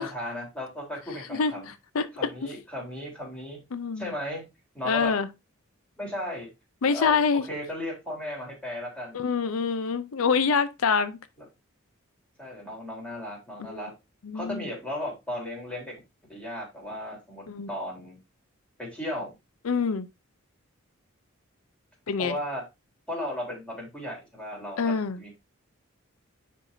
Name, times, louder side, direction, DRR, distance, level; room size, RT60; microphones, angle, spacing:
voice 1, 0.1-1.7 2.1-3.6 4.0-4.4 4.7-5.1 6.0-6.5 6.9-9.2 12.4-13.9 14.3-15.9 16.3-18.2 18.8-19.3 22.2-22.6 23.1-25.3, left 1 dB, 5° left, 3.5 m, -35 dB
voice 2, 1.3-1.6 1.9-2.1 3.7-4.1 4.8-5.3 6.8-7.4 9.1-11.2 13.6-13.7 14.2-14.6 17.5-17.7 19.6-20.1 22.1-22.3 24.8-25.2, left 5 dB, 85° left, 0.5 m, -25 dB
9.7 x 4.6 x 2.6 m
head